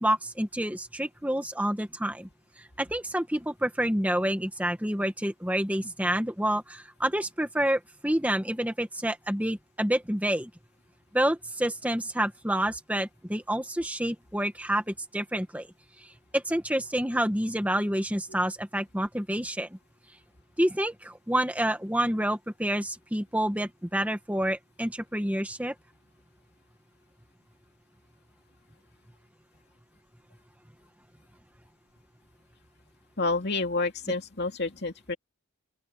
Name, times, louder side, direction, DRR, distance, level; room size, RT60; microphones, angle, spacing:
voice 1, 0.0-2.3 2.6-10.5 11.1-15.7 16.0-19.8 20.6-25.7, right 1 dB, 5° right, 1.7 m, -28 dB
voice 2, 33.2-35.2, left 3 dB, 50° left, 2.8 m, -29 dB
open air
head